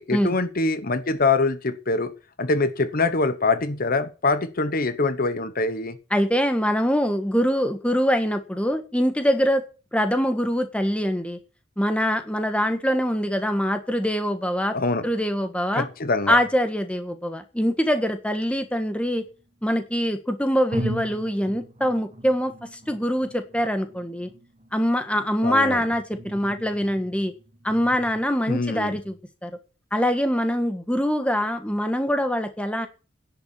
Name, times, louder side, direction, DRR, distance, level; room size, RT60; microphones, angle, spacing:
voice 1, 0.0-2.1 2.4-6.0 14.7-15.1 15.7-16.4 25.4-25.8 28.5-28.9, left 3 dB, 45° left, 12 dB, 1.0 m, -24 dB
voice 2, 6.1-9.6 9.9-11.4 11.8-14.8 15.0-15.9 16.3-19.2 19.6-24.3 24.7-27.3 27.6-29.2 29.4-29.5 29.9-32.9, equal, 5° left, 8 dB, 1.5 m, -24 dB
sound 1, 18.4-19.6 20.2-20.3 20.7-28.2, right 1 dB, 35° right, 2.0 m, -39 dB
11.0 x 8.0 x 8.5 m, 0.34 s
head